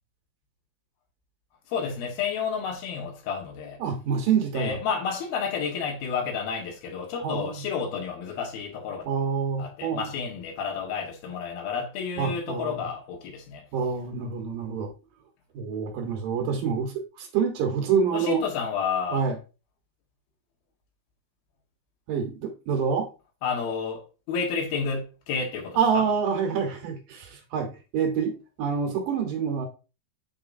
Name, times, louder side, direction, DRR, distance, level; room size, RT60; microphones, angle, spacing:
voice 1, 1.7-3.8 4.5-9.1 9.6-13.6 18.1-19.2 23.4-26.0, left 6 dB, 80° left, 3.3 m, -30 dB
voice 2, 3.8-4.8 7.2-7.7 9.1-10.1 12.2-12.9 13.7-14.9 15.5-18.4 19.1-19.4 22.1-23.1 25.8-29.7, right 6 dB, 70° right, 2.8 m, -27 dB
8.0 x 5.3 x 2.6 m
omnidirectional pair, 4.3 m